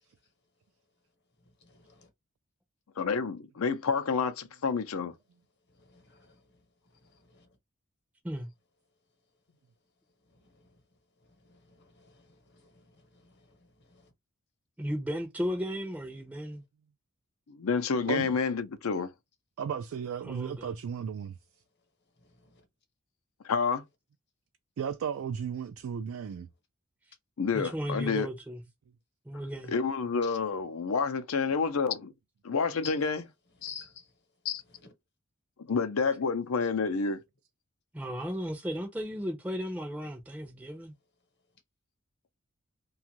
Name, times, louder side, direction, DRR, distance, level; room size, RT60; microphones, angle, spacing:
voice 1, 1.7-2.1 5.9-6.4 7.3-7.4 11.5-11.6 12.0-12.2 12.7-12.8 13.9-14.0 30.2-30.4 32.8-32.9 33.7-34.0, left 7 dB, 55° left, 1.0 m, -46 dB
voice 2, 3.0-5.1 17.5-19.1 23.4-23.8 27.4-28.3 29.7-32.1 32.4-33.3 34.4-34.6 35.7-37.2, left 5 dB, 75° left, 0.5 m, -29 dB
voice 3, 14.8-16.6 20.2-20.7 27.5-28.6 29.3-29.7 37.9-40.9, equal, 5° right, 0.5 m, -35 dB
voice 4, 18.1-18.4 19.6-21.4 24.8-26.5, right 7 dB, 70° right, 0.3 m, -35 dB
2.5 x 2.3 x 2.8 m
head